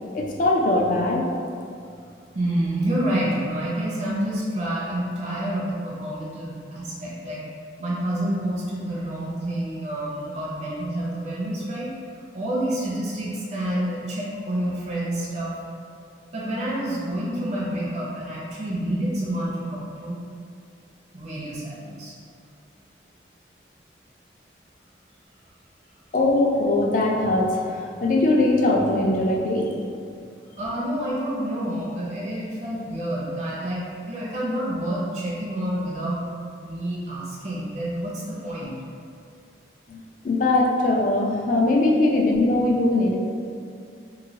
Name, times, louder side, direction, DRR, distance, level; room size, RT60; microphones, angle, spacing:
voice 1, 0.1-1.3 26.1-29.7 39.9-43.2, left 2 dB, 45° left, -1 dB, 0.4 m, -21 dB
voice 2, 2.3-7.4 7.8-11.9 12.3-15.5 16.3-20.2 21.1-22.1 30.6-36.2 36.6-38.7, right 1 dB, 40° right, -5 dB, 0.5 m, -28 dB
3.0 x 2.6 x 2.7 m, 2.4 s
head